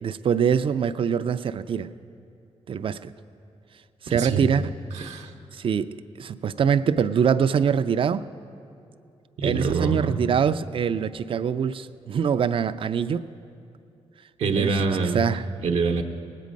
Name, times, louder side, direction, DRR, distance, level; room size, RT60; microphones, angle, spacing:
voice 1, 0.0-1.9 2.7-3.1 4.0-4.7 5.5-8.3 9.4-13.3 14.5-15.5, right 7 dB, 50° right, 0.4 m, -24 dB
voice 2, 4.1-4.6 5.0-5.3 9.4-10.2 14.4-15.2 15.6-16.0, right 4 dB, 80° right, 0.8 m, -25 dB
18.5 x 8.4 x 5.2 m
cardioid pair, 85°, 11 cm